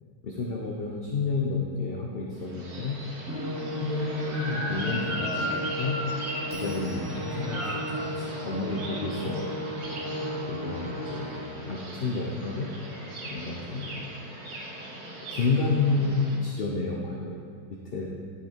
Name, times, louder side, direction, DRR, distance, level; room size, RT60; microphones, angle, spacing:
voice 1, 0.2-2.9 3.8-6.0 6.5-9.5 10.5-11.3 11.6-12.7 13.3-13.9 15.3-17.4 17.7-18.1, left 3 dB, 45° left, -2 dB, 0.9 m, -30 dB
sound 1, 2.4-16.4, right 1 dB, 70° right, 1.8 m, -37 dB
Musical instrument, 3.3-11.7, equal, 20° right, 0.5 m, -35 dB
Bell, 6.5-9.8, right 2 dB, 40° right, 1.5 m, -53 dB
11.5 x 5.6 x 4.5 m, 2.1 s
omnidirectional pair, 1.7 m